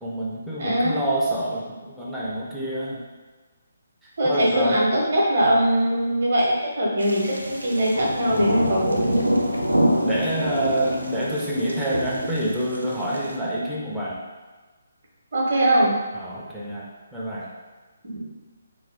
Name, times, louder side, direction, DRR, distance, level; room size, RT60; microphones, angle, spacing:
voice 1, 0.0-3.0 4.3-4.8 8.3-8.6 10.0-14.2 16.1-16.8 17.1-17.5, right 1 dB, 5° right, -8 dB, 0.4 m, -27 dB
voice 2, 0.6-1.0 4.2-9.1 15.3-16.0 18.0-18.2, right 1 dB, 50° right, -4 dB, 0.8 m, -21 dB
sound 1, 7.0-13.4, equal, 85° right, 0.4 m, -26 dB
2.6 x 2.2 x 3.3 m, 1.3 s
figure-of-eight pair, 140°, 0 cm